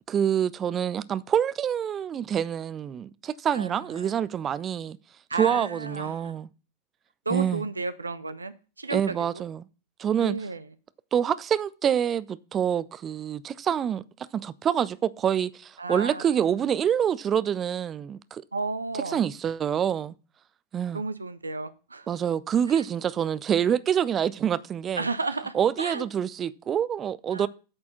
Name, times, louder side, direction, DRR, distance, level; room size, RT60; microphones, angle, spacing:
voice 1, 0.1-5.0 5.4-6.5 7.3-7.6 8.9-9.7 10.0-10.4 11.1-14.0 14.3-18.4 19.1-20.1 20.7-21.0 22.1-25.0 25.5-27.5, right 9 dB, 25° right, 0.4 m, -26 dB
voice 2, 3.5-4.1 5.3-6.4 7.3-9.4 10.2-10.7 15.8-16.4 18.5-19.2 20.9-22.1 22.7-22.8 25.0-26.1 27.3-27.5, right 3 dB, 80° right, 0.5 m, -33 dB
8.6 x 4.3 x 7.0 m
figure-of-eight pair, 90°, 0 cm